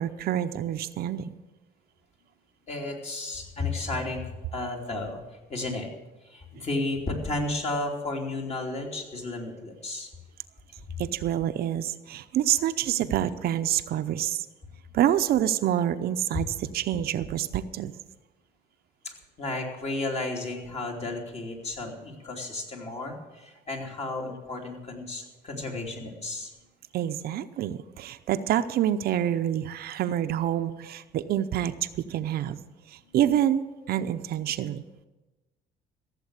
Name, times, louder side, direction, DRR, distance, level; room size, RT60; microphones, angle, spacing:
voice 1, 0.0-1.3 11.0-14.5 14.9-17.9 26.9-32.6 33.1-33.6 33.9-34.8, right 11 dB, 65° right, 10 dB, 0.7 m, -27 dB
voice 2, 2.7-5.2 5.5-5.9 6.3-10.1 19.0-26.5, left 2 dB, 40° left, 1 dB, 3.0 m, -33 dB
15.0 x 7.5 x 8.2 m, 1.1 s
cardioid pair, 110°, 17 cm